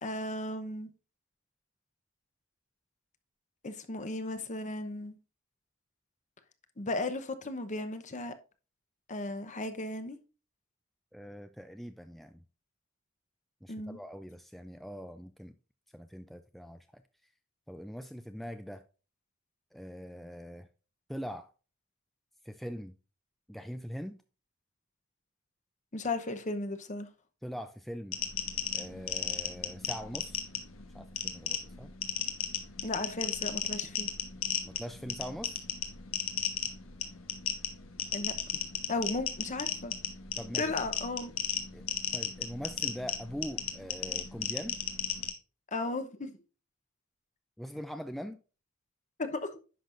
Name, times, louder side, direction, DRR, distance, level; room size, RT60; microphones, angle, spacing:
voice 1, 0.0-0.9 3.6-5.2 6.8-8.3 9.1-10.2 13.7-14.0 25.9-27.1 32.8-34.1 38.1-38.3 38.9-39.9 40.6-41.3 45.7-46.3 49.2-49.6, left 2 dB, 35° left, 0.9 m, -35 dB
voice 2, 11.1-12.4 13.6-15.6 15.9-17.0 17.7-18.8 19.7-20.7 21.1-21.5 22.4-22.9 23.5-24.2 27.4-28.2 28.7-30.4 30.9-31.9 34.6-35.6 40.4-40.7 41.7-44.8 47.6-48.4, equal, ahead, 0.4 m, -42 dB
sound 1, 28.1-45.3, left 8 dB, 90° left, 1.4 m, -35 dB
10.0 x 6.0 x 2.5 m
head